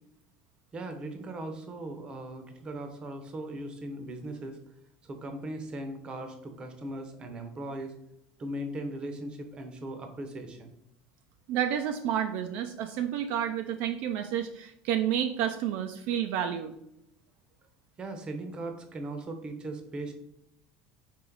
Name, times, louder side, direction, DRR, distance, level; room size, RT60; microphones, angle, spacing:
voice 1, 0.7-4.6 5.0-7.9 8.4-10.7 18.0-20.1, right 1 dB, 25° right, 6 dB, 0.7 m, -38 dB
voice 2, 11.5-16.7, right 9 dB, 60° right, 6 dB, 0.4 m, -30 dB
4.5 x 3.0 x 3.8 m, 0.77 s
cardioid pair, 150°, 4 cm